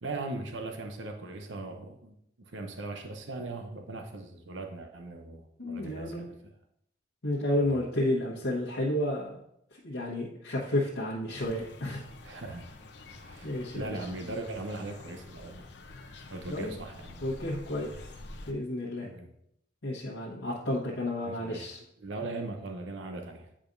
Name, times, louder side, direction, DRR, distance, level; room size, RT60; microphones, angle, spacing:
voice 1, 0.0-6.3 7.6-7.8 12.2-12.7 13.0-15.7 16.3-17.2 19.0-19.3 21.2-21.7 22.0-23.5, right 2 dB, 85° right, 5 dB, 0.7 m, -39 dB
voice 2, 5.6-6.2 7.2-9.4 9.8-12.0 13.4-14.0 16.5-16.8 17.2-17.9 18.5-19.1 19.8-21.8, left 1 dB, 90° left, -7 dB, 1.2 m, -31 dB
sound 1, 11.3-18.5, left 2 dB, 65° left, 0.7 m, -48 dB
8.7 x 5.0 x 2.6 m, 0.75 s
head